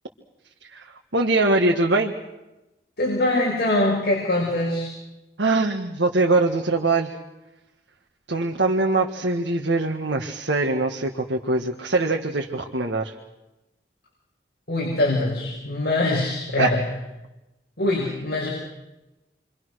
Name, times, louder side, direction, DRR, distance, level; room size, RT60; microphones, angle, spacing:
voice 1, 0.7-2.1 5.4-7.1 8.3-13.2 16.6-16.8, right 2 dB, 85° right, 1 dB, 1.8 m, -22 dB
voice 2, 3.0-4.9 14.7-16.8 17.8-18.5, left 2 dB, 60° left, -4 dB, 6.6 m, -23 dB
29.0 x 24.5 x 6.5 m, 0.99 s
head